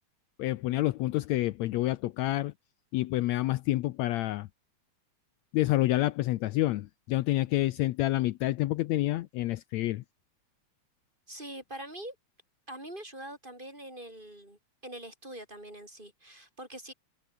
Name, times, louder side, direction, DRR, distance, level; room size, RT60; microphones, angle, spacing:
voice 1, 0.4-2.5 2.9-4.5 5.5-10.0, left 16 dB, 75° left, 1.9 m, -28 dB
voice 2, 11.3-12.2 12.7-16.9, right 1 dB, 15° right, 5.5 m, -44 dB
omnidirectional pair, 3.4 m